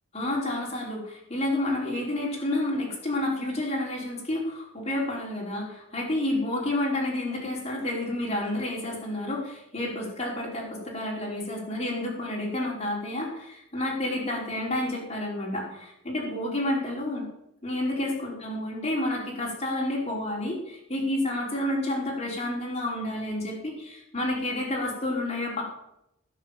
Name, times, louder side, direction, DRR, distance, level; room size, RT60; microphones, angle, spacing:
voice 1, 0.1-17.2 17.6-25.6, left 1 dB, 30° left, -3 dB, 4.7 m, -30 dB
19.5 x 7.4 x 7.4 m, 0.84 s
head